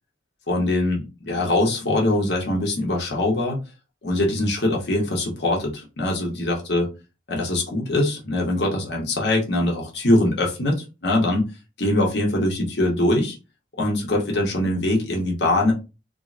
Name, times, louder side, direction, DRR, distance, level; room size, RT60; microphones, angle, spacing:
voice 1, 0.5-3.6 4.0-6.9 7.3-11.4 11.8-13.3 13.8-15.7, left 1 dB, 65° left, -1 dB, 1.0 m, -22 dB
3.6 x 2.1 x 2.5 m, 0.28 s
head